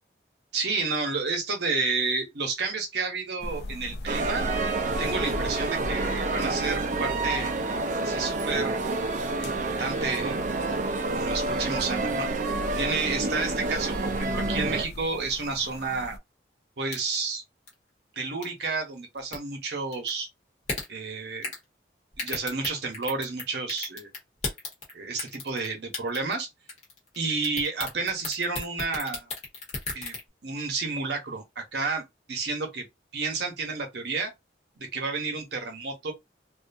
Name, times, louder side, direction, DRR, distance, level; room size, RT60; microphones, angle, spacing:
voice 1, 0.5-4.4 5.0-7.5 8.0-8.8 9.4-10.4 10.8-12.3 12.8-16.2 16.8-17.4 18.2-20.3 20.9-21.5 22.2-24.1 24.9-26.5 27.2-29.3 29.9-30.2 30.4-32.0 32.3-32.9 33.1-34.3 34.8-36.1, right 4 dB, 70° right, 0.8 m, -30 dB
sound 1, 3.4-16.2, left 1 dB, 65° left, 0.4 m, -38 dB
sound 2, 4.1-14.8, right 3 dB, 40° right, 0.4 m, -29 dB
sound 3, 16.9-17.3 17.7-17.8 18.4-18.6 19.2-19.4 19.9-20.1 20.7-20.8 21.4-21.6 22.1-23.4 23.7-24.9 25.2-25.7 25.9-26.4 26.7-27.2 27.4-30.2, left 3 dB, 40° left, 1.0 m, -33 dB
2.5 x 2.2 x 2.6 m
head